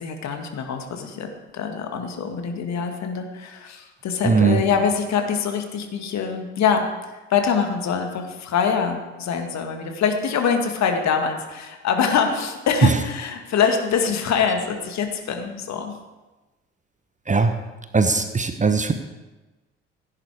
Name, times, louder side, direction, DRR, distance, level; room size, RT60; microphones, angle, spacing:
voice 1, 0.0-6.8 7.3-15.9, left 6 dB, 50° left, 5 dB, 2.1 m, -24 dB
voice 2, 4.2-4.6 17.3-17.5 17.9-18.9, right 4 dB, 20° right, 9 dB, 1.1 m, -19 dB
16.0 x 9.8 x 4.8 m, 1.1 s
figure-of-eight pair, 50°, 36 cm